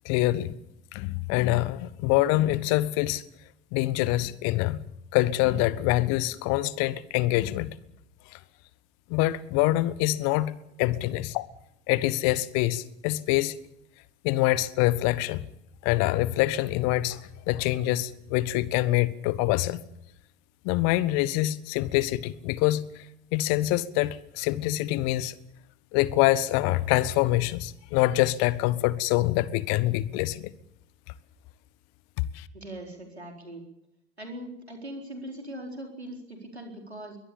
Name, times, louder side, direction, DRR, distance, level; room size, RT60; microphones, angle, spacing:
voice 1, 0.0-0.5 0.9-3.2 3.7-4.8 5.1-7.7 8.3-8.4 9.1-10.5 10.8-11.5 11.9-13.6 14.2-15.4 15.8-17.2 17.5-19.8 20.6-22.8 23.3-25.4 25.9-30.5 32.3-32.4, left 16 dB, 55° left, 1.3 m, -25 dB
voice 2, 32.5-33.6 34.2-37.2, right 1 dB, 90° right, 4.3 m, -40 dB
23.0 x 19.0 x 7.1 m
figure-of-eight pair, 65°, 31 cm